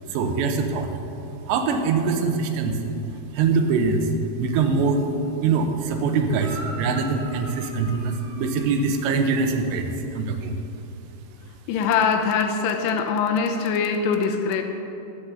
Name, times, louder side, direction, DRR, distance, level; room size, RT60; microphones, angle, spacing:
voice 1, 0.1-0.9 1.5-2.8 3.3-4.1 4.4-10.5, right 4 dB, 80° right, 6 dB, 3.0 m, -23 dB
sound 1, 6.4-9.6, right 2 dB, 55° right, 2.3 m, -41 dB
voice 2, 11.7-14.6, left 6 dB, 80° left, 5 dB, 2.9 m, -22 dB
12.0 x 8.4 x 6.8 m, 2.8 s
omnidirectional pair, 5.1 m